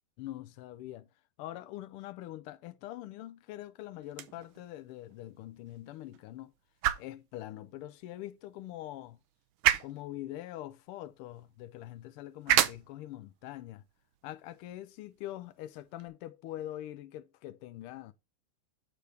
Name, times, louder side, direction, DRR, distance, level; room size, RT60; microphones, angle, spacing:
voice 1, 0.2-1.1 1.4-6.5 7.0-9.2 9.8-13.8 14.2-18.1, left 14 dB, 90° left, 1.5 m, -43 dB
sound 1, 4.0-16.1, right 11 dB, 75° right, 1.4 m, -35 dB
8.1 x 3.3 x 5.8 m
omnidirectional pair, 2.4 m